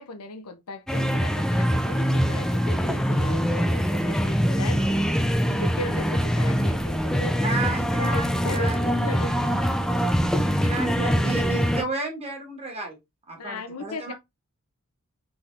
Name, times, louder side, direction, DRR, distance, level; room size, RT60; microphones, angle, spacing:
voice 1, 0.0-4.9 5.5-7.4 8.0-9.4 13.4-14.1, left 2 dB, 90° left, 0.7 m, -37 dB
sound 1, 0.9-11.8, equal, 5° left, 0.4 m, -23 dB
voice 2, 7.4-8.8 10.6-13.0 13.3-14.1, right 3 dB, 30° right, 1.8 m, -32 dB
4.1 x 3.6 x 3.3 m
head